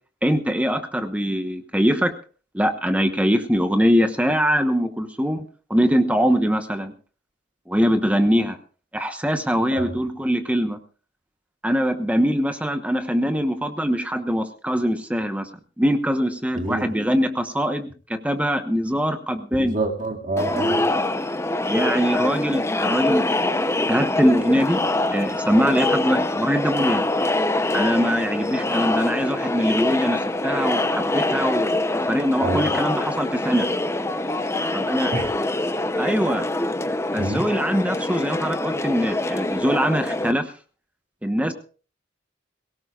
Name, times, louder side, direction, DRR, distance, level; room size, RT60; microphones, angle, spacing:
voice 1, 0.2-2.1 2.5-6.9 7.7-8.6 8.9-10.8 11.6-15.5 15.8-19.8 21.7-23.6 23.9-24.8 25.1-27.0 27.7-31.7 32.1-33.7 34.7-35.1 36.0-36.4 37.1-40.5 41.2-41.5, equal, 5° right, 7 dB, 1.1 m, -22 dB
voice 2, 16.6-16.9 19.6-20.8 32.4-32.7 35.1-35.3 37.2-37.4, right 2 dB, 45° right, 2 dB, 2.2 m, -27 dB
Crowd, 20.4-40.3, left 2 dB, 15° left, 0.7 m, -24 dB
23.0 x 17.0 x 2.4 m, 0.38 s
head